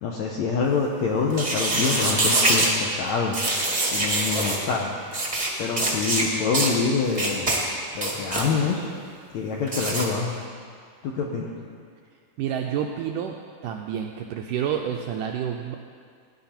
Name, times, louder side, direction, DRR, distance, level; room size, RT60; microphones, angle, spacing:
voice 1, 0.0-3.5 3.9-5.0 5.6-7.5 7.9-8.9 9.3-10.3 11.0-11.5, left 5 dB, 75° left, -1 dB, 1.6 m, -26 dB
sound 1, 1.3-2.7 3.3-4.6 5.1-5.5 5.8-6.2 6.5-6.7 7.1-7.6 7.9-8.5 9.7-10.0, right 2 dB, 30° right, 0.7 m, -24 dB
voice 2, 12.4-13.4 13.6-15.8, right 9 dB, 85° right, 2 dB, 1.9 m, -29 dB
17.5 x 10.5 x 4.4 m, 2.1 s
omnidirectional pair, 4.3 m